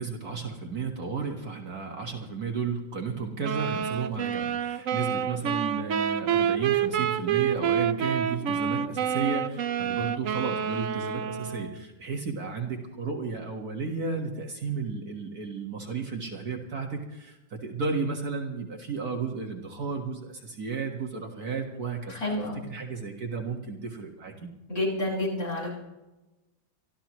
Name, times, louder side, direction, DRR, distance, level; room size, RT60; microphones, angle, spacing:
voice 1, 0.0-22.2 22.5-24.3, right 5 dB, 50° right, 1 dB, 2.0 m, -33 dB
sound 1, 3.4-11.8, right 8 dB, 70° right, 0.7 m, -28 dB
voice 2, 22.1-22.6 24.7-25.7, left 1 dB, 45° left, -5 dB, 6.4 m, -29 dB
25.5 x 13.0 x 3.1 m, 1.1 s
omnidirectional pair, 2.1 m